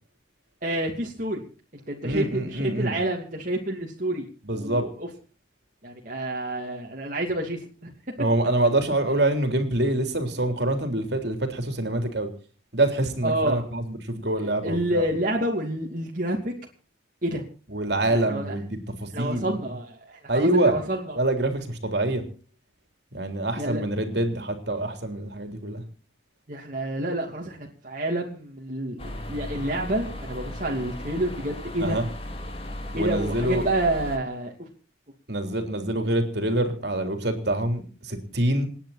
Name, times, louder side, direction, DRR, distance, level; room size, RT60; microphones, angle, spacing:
voice 1, 0.6-1.4 1.7-4.3 4.5-5.1 5.8-7.9 13.2-13.6 14.4-16.5 17.2-17.4 18.1-18.5 19.1-21.2 23.6-23.8 26.5-32.0 32.9-34.7, right 1 dB, 45° right, -1 dB, 2.8 m, -29 dB
voice 2, 2.0-3.0 4.5-4.8 8.2-12.3 12.7-15.0 17.7-19.5 20.3-20.8 21.2-22.2 23.1-25.8 31.8-32.0 32.9-33.7 35.3-38.7, right 1 dB, 60° right, 6 dB, 3.6 m, -25 dB
sound 1, 29.0-34.2, left 1 dB, 30° left, 2.6 m, -36 dB
28.5 x 10.0 x 4.3 m, 0.38 s
head